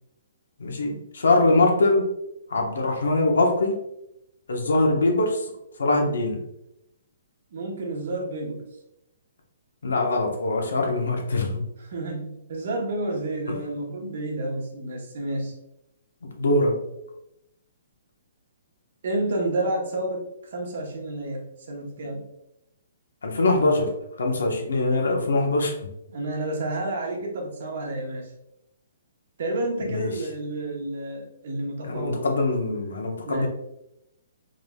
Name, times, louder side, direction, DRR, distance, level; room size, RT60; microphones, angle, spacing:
voice 1, 0.6-2.1 2.5-3.8 4.5-5.5 5.8-6.4 9.8-11.7 13.5-13.6 16.2-16.8 23.2-23.9 24.2-25.7 29.8-30.1 31.8-33.5, left 2 dB, 90° left, 1 dB, 0.9 m, -23 dB
voice 2, 7.5-8.7 11.8-15.5 19.0-20.2 20.5-22.2 26.1-28.3 29.4-32.2 33.2-33.5, right 2 dB, 60° right, 0 dB, 1.0 m, -30 dB
3.8 x 3.4 x 2.3 m, 0.83 s
hypercardioid pair, 155°, 0 cm